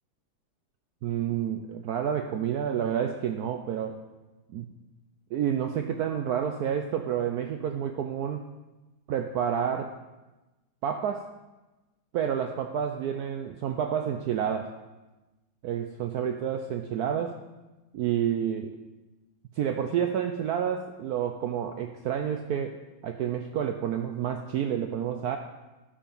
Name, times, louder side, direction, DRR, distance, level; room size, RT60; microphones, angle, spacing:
voice 1, 1.0-4.0 4.5-4.7 5.3-8.4 9.1-10.0 10.8-11.3 12.1-14.8 15.6-17.4 17.9-18.7 19.6-25.4, right 8 dB, 75° right, 6 dB, 0.9 m, -29 dB
11.5 x 5.1 x 5.4 m, 1.1 s
omnidirectional pair, 2.1 m